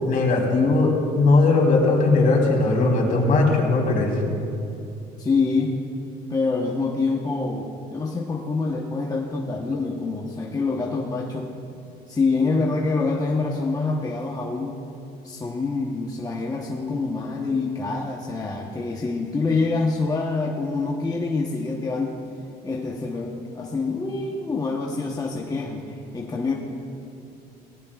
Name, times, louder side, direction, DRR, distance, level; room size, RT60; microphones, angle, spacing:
voice 1, 0.0-4.1, left 3 dB, 55° left, -1 dB, 3.4 m, -19 dB
voice 2, 5.2-5.8 6.3-11.5 12.1-14.8 15.2-22.2 22.6-26.5, left 3 dB, 20° left, -1 dB, 1.0 m, -26 dB
19.5 x 18.0 x 2.4 m, 2.7 s
cardioid pair, 110°, 17 cm